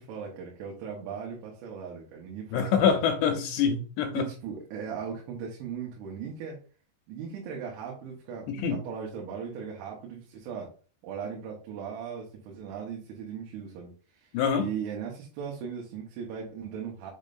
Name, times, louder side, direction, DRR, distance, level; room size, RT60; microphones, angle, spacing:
voice 1, 0.0-3.0 4.2-6.6 7.1-10.7 11.0-17.1, right 7 dB, 85° right, -1 dB, 3.6 m, -38 dB
voice 2, 2.5-4.3 8.5-8.8 14.3-14.7, left 7 dB, 80° left, 5 dB, 2.7 m, -25 dB
7.2 x 5.2 x 2.5 m, 0.39 s
omnidirectional pair, 5.3 m